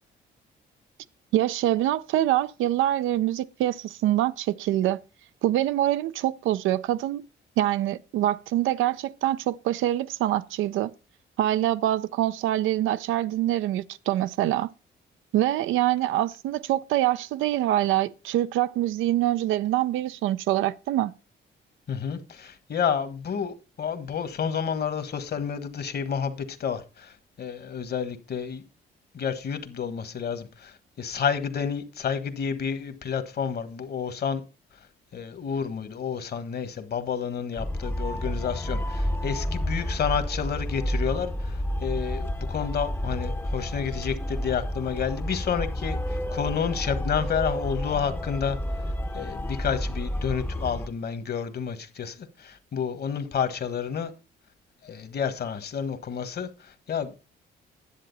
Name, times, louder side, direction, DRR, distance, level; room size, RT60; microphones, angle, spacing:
voice 1, 1.3-5.0 5.4-7.2 7.6-10.9 11.4-14.7 15.3-21.1, right 13 dB, 85° right, 0.4 m, -25 dB
voice 2, 21.9-28.6 29.1-34.4 35.1-48.6 49.1-54.1 54.8-57.1, left 7 dB, 55° left, 1.4 m, -30 dB
sound 1, 37.6-50.9, equal, 10° left, 0.7 m, -30 dB
10.5 x 7.6 x 4.1 m
cardioid pair, 90°, 20 cm